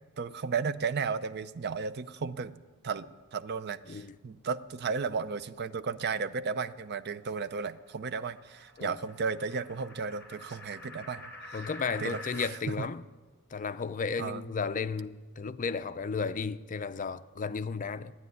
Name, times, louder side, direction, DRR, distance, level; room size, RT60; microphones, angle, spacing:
voice 1, 0.2-2.6 2.8-11.2 11.5-11.6 12.0-12.5 12.8-12.9 14.2-14.4, right 5 dB, 50° right, 0.5 m, -34 dB
sound 1, 5.8-12.5, left 1 dB, 10° left, 2.7 m, -49 dB
voice 2, 11.5-13.0 13.5-18.1, left 5 dB, 35° left, 0.4 m, -34 dB
12.5 x 9.5 x 9.4 m
head